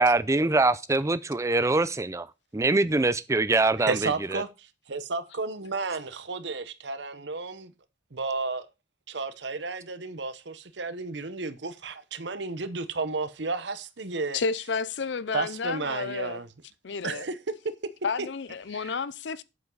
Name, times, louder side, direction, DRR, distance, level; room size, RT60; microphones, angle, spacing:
voice 1, 0.0-2.3 2.5-4.4, right 2 dB, 15° right, 0.5 m, -24 dB
voice 2, 3.9-7.7 8.1-8.7 9.1-14.4 15.3-16.5 17.0-17.4 18.2-18.3 18.7-19.0, right 3 dB, 70° right, 1.0 m, -32 dB
voice 3, 14.3-16.4 16.8-17.2 18.0-19.4, left 5 dB, 70° left, 0.6 m, -31 dB
8.4 x 7.2 x 3.9 m
head